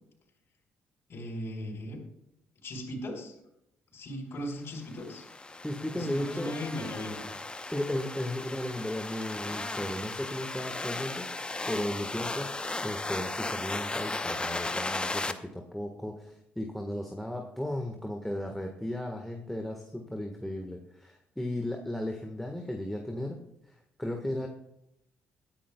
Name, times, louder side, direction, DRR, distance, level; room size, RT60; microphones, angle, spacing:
voice 1, 1.1-2.0 2.6-3.3 3.9-5.2 5.9-7.4, left 1 dB, 60° left, -2 dB, 4.3 m, -37 dB
sound 1, 4.9-15.3, left 2 dB, 20° left, 0.9 m, -36 dB
voice 2, 5.6-6.5 7.7-23.4 23.7-24.5, left 1 dB, 5° left, 2 dB, 1.5 m, -35 dB
22.0 x 10.0 x 2.3 m, 0.80 s
supercardioid pair, 65°, 5 cm